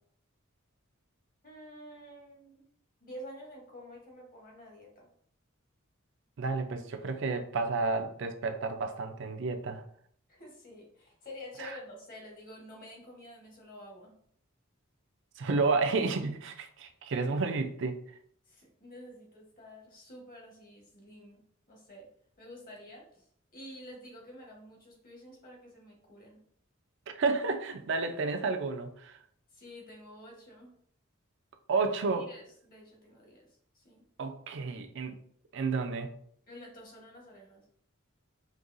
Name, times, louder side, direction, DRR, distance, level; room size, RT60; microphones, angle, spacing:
voice 1, 1.4-2.6 3.0-5.1 10.3-14.1 18.5-21.4 21.7-22.1 22.4-23.2 23.5-26.4 29.5-30.8 32.1-33.5 33.7-34.0 36.5-37.6, left 1 dB, 45° left, 1.3 m, -49 dB
voice 2, 6.4-9.8 11.6-11.7 15.4-18.0 27.1-29.2 31.7-32.3 34.2-35.2 35.5-36.1, right 4 dB, 60° right, 0.4 m, -31 dB
5.2 x 2.8 x 2.6 m
head